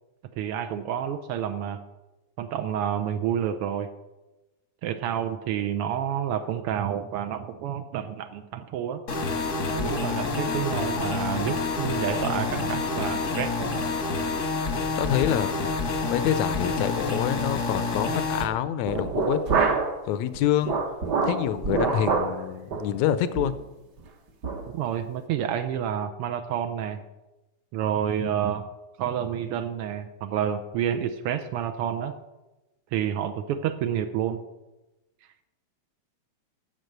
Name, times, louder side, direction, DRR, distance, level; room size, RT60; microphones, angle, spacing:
voice 1, 0.4-1.8 2.4-3.9 4.8-9.0 9.8-13.8 24.7-27.0 27.7-28.7 29.0-32.1 32.9-34.4, right 9 dB, 85° right, 7 dB, 1.2 m, -29 dB
sound 1, 9.1-18.4, left 3 dB, 50° left, 0.9 m, -28 dB
voice 2, 15.0-15.5 16.1-19.8 20.1-20.8 21.2-23.5, left 11 dB, 80° left, 14 dB, 1.9 m, -26 dB
sound 2, 18.9-20.0 20.3-22.4 22.7-22.9 23.4-23.6 24.0-24.1 24.4-24.6, right 4 dB, 55° right, 1.2 m, -26 dB
11.0 x 7.4 x 6.6 m, 1.0 s
omnidirectional pair, 3.3 m